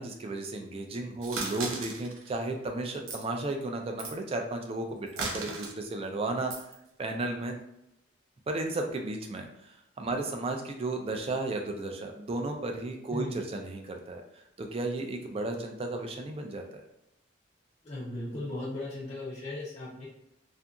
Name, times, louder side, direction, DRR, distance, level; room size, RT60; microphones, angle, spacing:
voice 1, 0.0-6.5 7.0-7.5 8.5-9.7 10.0-14.2 14.6-16.6, right 2 dB, 30° right, 4 dB, 0.3 m, -34 dB
sound 1, 1.2-2.3 2.9-3.2 4.0-4.1 5.1-5.7 6.5-6.7, right 3 dB, 85° right, 0.6 m, -36 dB
voice 2, 17.9-20.1, left 2 dB, 35° left, -5 dB, 0.5 m, -37 dB
2.7 x 2.5 x 2.3 m, 0.82 s
head